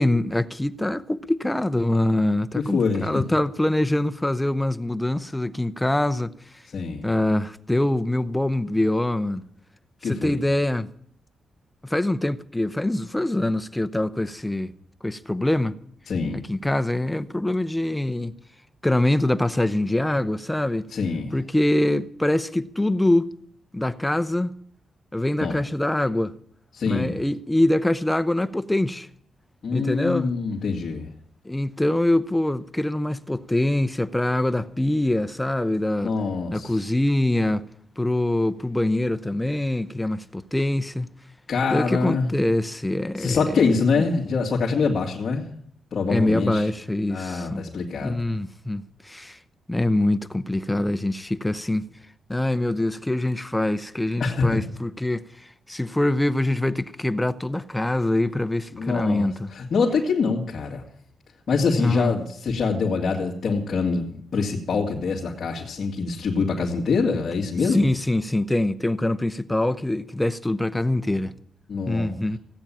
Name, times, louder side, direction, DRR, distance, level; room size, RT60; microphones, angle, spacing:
voice 1, 0.0-6.3 7.0-9.4 10.0-10.9 11.8-14.7 15.0-15.8 16.3-18.3 18.8-20.9 21.3-23.3 23.7-24.5 25.1-26.3 26.9-29.1 29.7-30.4 31.4-36.1 36.5-37.7 38.0-41.1 41.7-43.7 44.0-44.1 46.1-47.7 48.0-49.4 49.7-51.9 52.3-59.5 61.8-62.1 67.7-71.3 71.9-72.4, left 1 dB, 5° left, 0.7 m, -24 dB
voice 2, 2.5-3.2 6.7-7.1 10.0-10.4 16.1-16.4 20.9-21.3 25.4-25.6 26.7-27.2 29.6-31.1 36.0-36.8 41.5-42.3 43.2-45.5 45.9-46.7 47.1-48.2 54.2-54.6 58.7-60.8 61.5-67.9 71.7-72.1, left 4 dB, 50° left, 2.3 m, -25 dB
16.5 x 8.9 x 8.6 m
wide cardioid pair, 145°, 0 cm